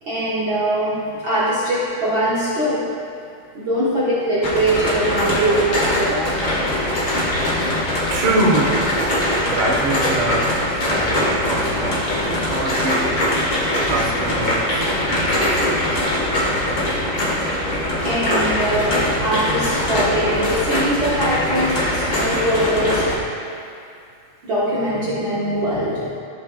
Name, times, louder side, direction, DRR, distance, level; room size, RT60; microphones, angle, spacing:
voice 1, 0.0-2.9 3.5-6.3 18.0-23.1 24.4-26.2, right 1 dB, 90° right, -10 dB, 1.0 m, -22 dB
sound 1, 4.4-23.2, left 1 dB, 55° left, 0.9 m, -22 dB
voice 2, 8.1-10.5 10.8-12.0 12.5-13.2 13.8-16.0, right 2 dB, 60° right, -3 dB, 1.5 m, -24 dB
15.0 x 6.8 x 2.4 m, 2.3 s
omnidirectional pair, 4.4 m